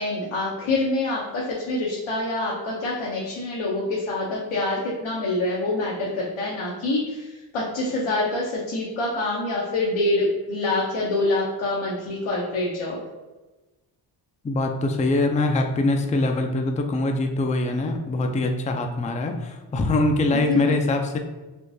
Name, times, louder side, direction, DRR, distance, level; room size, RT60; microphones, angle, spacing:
voice 1, 0.0-13.0 20.3-20.6, left 2 dB, 75° left, -4 dB, 0.8 m, -26 dB
voice 2, 14.4-21.2, left 2 dB, 15° left, 4 dB, 0.3 m, -23 dB
3.7 x 2.5 x 2.6 m, 1.1 s
cardioid pair, 55°, 49 cm